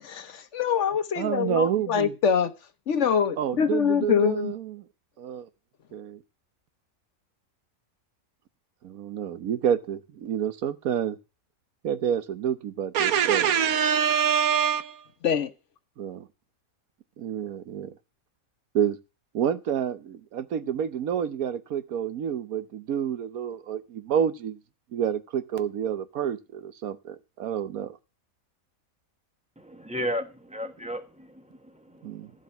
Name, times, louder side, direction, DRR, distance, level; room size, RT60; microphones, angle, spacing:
voice 1, 0.0-2.5 2.9-4.5 15.2-15.5, left 7 dB, 60° left, 1.1 m, -24 dB
voice 2, 1.2-2.1 3.4-4.8 5.2-5.5 5.9-6.2 8.8-11.2 11.8-15.1 16.0-16.3 17.2-17.9 18.7-19.0 19.3-24.6 24.9-28.0 32.0-32.3, right 8 dB, 85° right, 1.3 m, -27 dB
voice 3, 29.6-32.4, equal, 5° right, 1.2 m, -35 dB
14.0 x 5.3 x 7.0 m
omnidirectional pair, 1.5 m